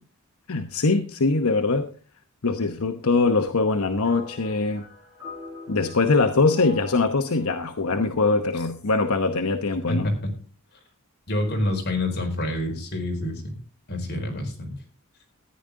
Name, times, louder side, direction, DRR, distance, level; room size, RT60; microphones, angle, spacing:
voice 1, 0.5-1.9 2.4-4.8 5.7-10.1, left 3 dB, 80° left, 1.0 m, -22 dB
sound 1, 4.0-9.5, left 3 dB, 15° right, 6.7 m, -44 dB
voice 2, 9.9-10.3 11.3-13.5 13.9-14.7, left 1 dB, 50° left, 4.5 m, -27 dB
14.0 x 10.5 x 3.7 m
head